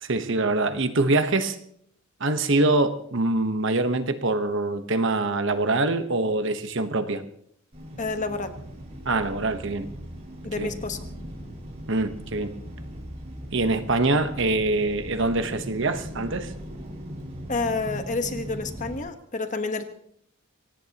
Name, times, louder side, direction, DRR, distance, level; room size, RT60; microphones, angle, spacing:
voice 1, 0.0-1.6 2.2-7.2 9.0-9.9 10.6-10.7 11.9-12.5 13.5-16.5, right 2 dB, 60° right, 9 dB, 1.1 m, -24 dB
sound 1, 7.7-19.0, equal, 30° right, 5.3 m, -39 dB
voice 2, 8.0-8.5 10.4-11.0 17.5-19.8, left 3 dB, 35° left, 8 dB, 1.2 m, -29 dB
24.5 x 18.0 x 3.0 m, 0.68 s
head